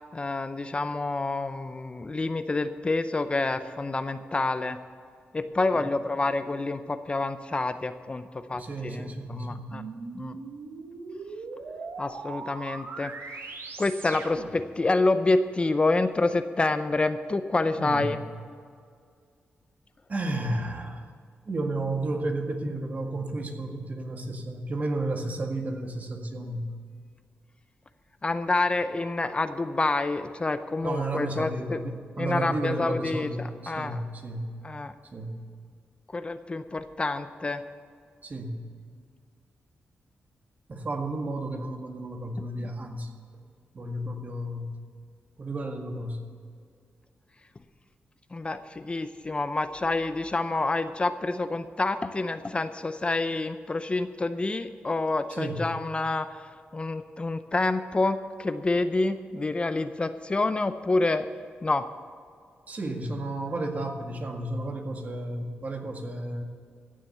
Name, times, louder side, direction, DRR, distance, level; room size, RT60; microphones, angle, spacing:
voice 1, 0.0-4.8 5.3-9.8 10.1-10.4 12.0-13.1 13.8-18.2 28.2-31.8 32.2-34.0 34.6-34.9 36.1-37.6 48.3-56.5 56.7-61.3 61.6-61.9, left 2 dB, 25° left, 10 dB, 0.6 m, -28 dB
voice 2, 8.5-9.8 17.8-18.1 20.1-21.0 21.5-26.7 30.8-34.5 35.1-35.3 38.2-38.6 40.7-43.1 43.7-44.7 45.4-46.2 55.3-55.7 62.7-66.4, right 2 dB, 40° right, 3 dB, 1.8 m, -32 dB
sound 1, 9.7-14.7, right 4 dB, 70° right, 1.8 m, -40 dB
15.5 x 7.5 x 6.9 m, 2.1 s
cardioid pair, 85°, 4 cm